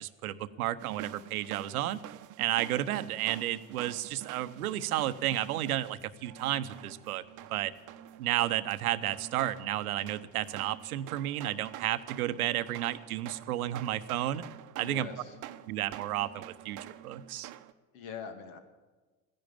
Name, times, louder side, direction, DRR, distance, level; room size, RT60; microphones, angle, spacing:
voice 1, 0.0-2.0 2.4-7.2 7.5-7.7 8.2-14.4 14.8-15.1 15.7-17.5, right 13 dB, 75° right, 14 dB, 0.9 m, -32 dB
sound 1, 0.8-17.7, right 12 dB, 45° right, 0.9 m, -47 dB
voice 2, 14.8-15.4 17.9-18.6, left 6 dB, 60° left, 7 dB, 2.4 m, -42 dB
15.0 x 10.5 x 8.7 m, 1.3 s
hypercardioid pair, 75°, 44 cm